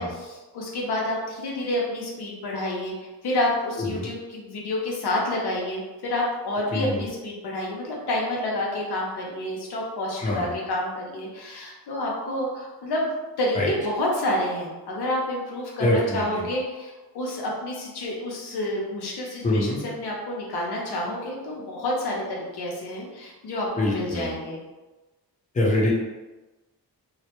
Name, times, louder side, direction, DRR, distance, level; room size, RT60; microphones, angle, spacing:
voice 1, 0.0-2.9 3.2-13.1 13.4-24.6, left 1 dB, 90° left, -3 dB, 0.7 m, -29 dB
voice 2, 6.7-7.0 10.2-10.5 13.5-13.7 15.8-16.5 19.4-19.9 23.8-24.4 25.5-25.9, left 1 dB, 20° left, -3 dB, 0.5 m, -24 dB
2.2 x 2.1 x 2.9 m, 1.2 s
wide cardioid pair, 85°, 38 cm